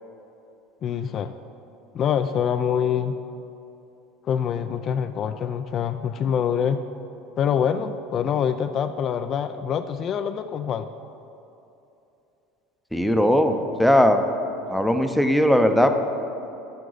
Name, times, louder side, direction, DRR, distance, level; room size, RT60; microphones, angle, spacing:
voice 1, 0.8-1.3 1.9-3.2 4.2-6.8 7.4-10.9, left 8 dB, 40° left, 9 dB, 0.3 m, -25 dB
voice 2, 12.9-14.2 14.7-16.0, equal, ahead, 6 dB, 0.6 m, -19 dB
10.0 x 7.7 x 4.0 m, 2.9 s
supercardioid pair, 120°, 0 cm